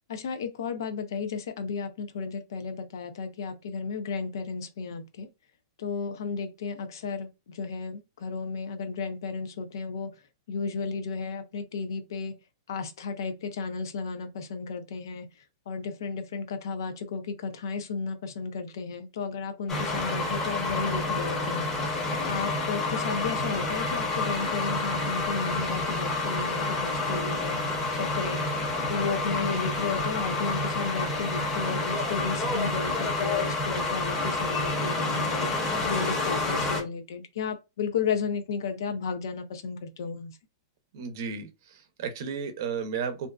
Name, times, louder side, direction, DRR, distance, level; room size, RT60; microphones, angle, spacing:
voice 1, 0.1-5.3 5.8-10.1 10.5-12.3 12.7-21.6 22.1-27.6 27.9-40.4, left 5 dB, 75° left, 0.5 m, -33 dB
sound 1, 19.7-36.8, left 2 dB, 20° left, 0.8 m, -29 dB
voice 2, 40.9-43.3, right 6 dB, 65° right, 0.6 m, -33 dB
2.5 x 2.2 x 2.3 m
hypercardioid pair, 140°, 2 cm